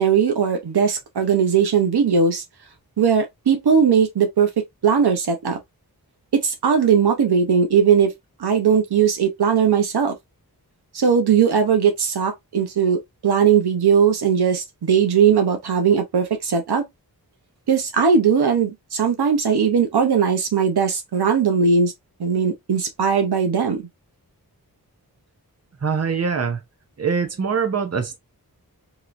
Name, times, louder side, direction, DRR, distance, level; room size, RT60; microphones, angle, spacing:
voice 1, 0.0-2.4 3.0-4.5 4.8-5.6 6.3-8.1 8.4-10.2 10.9-16.8 17.7-21.9 22.2-23.9, right 6 dB, 85° right, 0.8 m, -19 dB
voice 2, 25.8-26.6 27.0-28.2, right 6 dB, 40° right, 0.8 m, -23 dB
3.0 x 2.9 x 2.5 m
wide cardioid pair, 60°, 38 cm